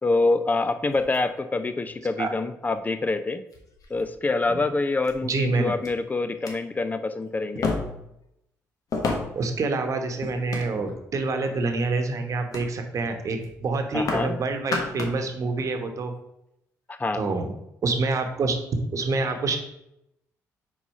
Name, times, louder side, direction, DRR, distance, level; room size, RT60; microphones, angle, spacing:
voice 1, 0.0-3.4 3.9-7.8 13.9-14.4 16.9-17.2, left 3 dB, 25° left, 10 dB, 0.6 m, -26 dB
sound 1, 0.9-1.9 2.8-2.9 3.5-4.1 5.0-5.1 5.8-5.9 6.3-6.5 7.6-8.1 8.9-9.5 10.2-11.1 11.6-11.9 12.5-12.7 13.0-13.2 13.4-14.3 14.6-15.2 15.6-15.7, left 3 dB, 60° left, 1.3 m, -31 dB
voice 2, 5.2-5.7 9.3-16.1 17.1-17.5 17.8-18.6 18.9-19.6, right 3 dB, 50° right, 6 dB, 1.1 m, -27 dB
4.6 x 4.0 x 5.4 m, 0.83 s
supercardioid pair, 70°, 7 cm